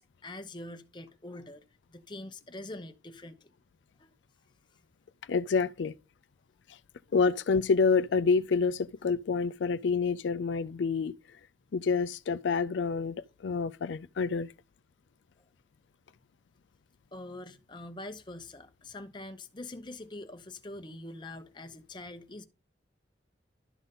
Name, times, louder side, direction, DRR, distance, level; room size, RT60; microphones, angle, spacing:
voice 1, 0.0-1.6 1.9-3.5 4.0-4.1 17.1-22.4, left 2 dB, 25° left, 0.8 m, -44 dB
voice 2, 5.3-5.9 7.1-11.1 11.7-14.5, left 5 dB, 80° left, 0.4 m, -28 dB
12.0 x 4.0 x 5.4 m
head